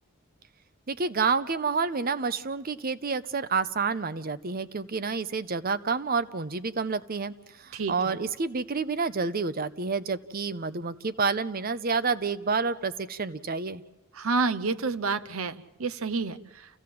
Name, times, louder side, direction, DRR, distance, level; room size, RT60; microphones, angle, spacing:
voice 1, 0.9-7.3 7.6-13.8, right 4 dB, 45° right, 14 dB, 0.7 m, -29 dB
voice 2, 7.7-8.2 14.1-15.5 15.8-16.4, right 4 dB, 80° right, 12 dB, 0.8 m, -28 dB
28.0 x 15.5 x 7.7 m, 1.0 s
head